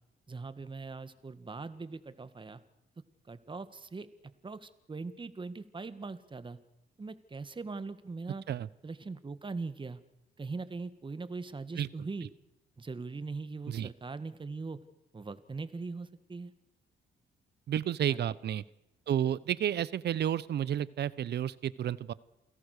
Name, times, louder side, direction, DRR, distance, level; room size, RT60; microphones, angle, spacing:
voice 1, 0.3-2.6 3.3-4.1 4.4-6.6 7.0-8.4 8.8-10.0 10.4-12.3 12.8-14.8 15.1-16.5 18.1-18.3, right 4 dB, 25° right, 12 dB, 1.8 m, -41 dB
voice 2, 17.7-18.6 19.1-22.1, right 10 dB, 65° right, 19 dB, 0.9 m, -31 dB
29.0 x 17.0 x 6.7 m, 0.89 s
cardioid pair, 85°, 19 cm